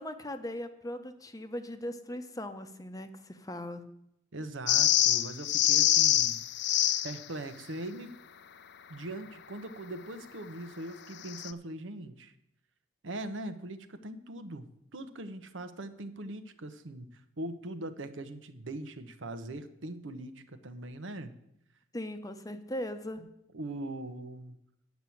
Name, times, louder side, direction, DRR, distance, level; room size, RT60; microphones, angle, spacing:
voice 1, 0.0-3.8 21.9-23.2, left 1 dB, 20° left, 8 dB, 0.7 m, -39 dB
voice 2, 4.3-6.4 6.8-8.1 8.9-12.3 13.0-21.3 23.2-23.3 23.5-24.6, right 1 dB, 80° right, 9 dB, 0.9 m, -41 dB
sound 1, 4.7-7.2 11.2-11.5, left 12 dB, 60° left, 0.5 m, -25 dB
9.5 x 6.1 x 8.4 m, 0.78 s
head